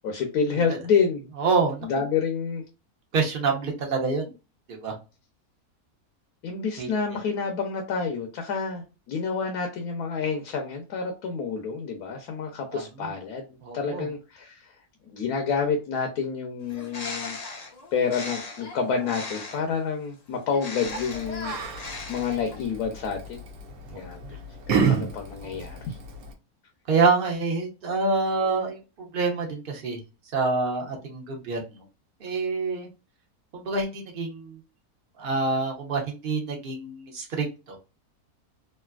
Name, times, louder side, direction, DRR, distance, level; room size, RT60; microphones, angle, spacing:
voice 1, 0.0-1.3 1.8-2.6 6.4-13.4 13.7-14.7 15.1-17.4 17.9-21.6 22.1-23.4 24.0-24.2 24.7-26.0, left 5 dB, 80° left, 2 dB, 1.1 m, -28 dB
voice 2, 1.4-1.9 3.1-4.3 4.7-4.9 6.8-6.9 12.7-13.1 13.6-14.1 25.4-25.7 26.9-28.8 29.1-30.0 30.3-31.8 32.2-32.9 33.5-34.6 35.2-37.8, right 4 dB, 40° right, 1 dB, 1.0 m, -26 dB
Bird, 16.6-19.8 20.5-22.7, left 2 dB, 55° left, 0.4 m, -37 dB
Yell, 20.8-26.3, right 5 dB, 75° right, 1.1 m, -31 dB
3.2 x 2.5 x 2.3 m, 0.30 s
omnidirectional pair, 1.6 m